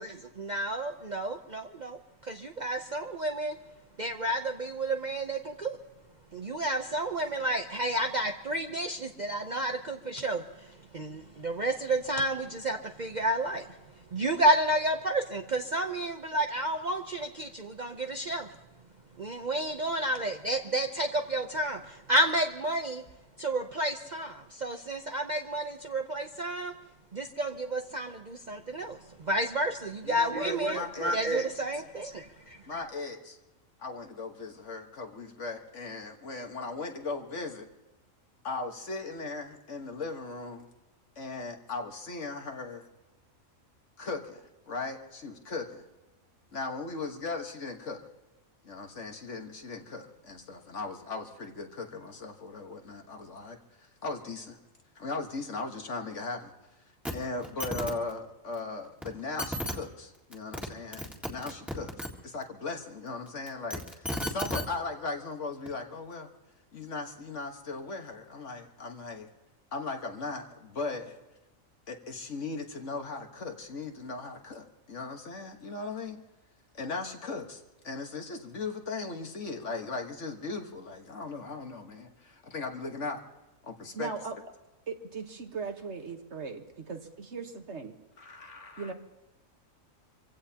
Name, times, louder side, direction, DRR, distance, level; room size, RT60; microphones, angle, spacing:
voice 1, 0.0-3.6 4.0-5.8 6.3-10.7 10.9-13.7 14.1-18.5 19.2-23.0 23.4-26.7 27.1-32.6, right 1 dB, 40° right, 4 dB, 0.7 m, -31 dB
voice 2, 30.0-31.2 32.4-33.4 33.8-37.7 38.4-40.7 41.2-42.9 44.0-45.8 46.5-48.0 48.6-54.6 55.0-56.5 57.1-61.9 62.2-66.3 66.7-69.3 69.7-71.2 71.9-76.2 76.7-83.2 83.6-84.1 88.2-88.9, left 3 dB, 60° left, 3 dB, 1.8 m, -38 dB
sound 1, 57.0-57.1 57.4-57.9 59.0-59.1 59.4-59.7 60.3-60.7 60.9-62.1 63.5-64.6 65.7-65.8, equal, ahead, 1.8 m, -33 dB
voice 3, 83.9-84.4 84.9-87.9 88.8-88.9, right 5 dB, 60° right, 5 dB, 1.6 m, -38 dB
26.5 x 16.0 x 2.9 m, 1.0 s
omnidirectional pair, 1.4 m